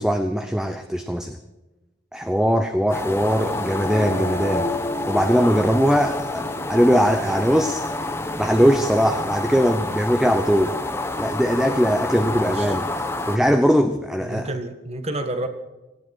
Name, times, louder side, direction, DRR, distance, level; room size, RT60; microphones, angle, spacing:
voice 1, 0.0-1.4 2.1-4.7 5.1-8.1 8.4-10.7 11.2-12.8 13.3-14.5, equal, 5° right, 8 dB, 0.7 m, -20 dB
sound 1, 2.9-13.4, left 2 dB, 10° left, 1.1 m, -28 dB
voice 2, 3.4-3.7 12.2-12.8 14.2-15.5, right 1 dB, 30° right, 8 dB, 1.6 m, -31 dB
sound 2, 3.5-9.5, left 2 dB, 30° left, 2.1 m, -33 dB
18.5 x 16.0 x 4.6 m, 1.1 s
head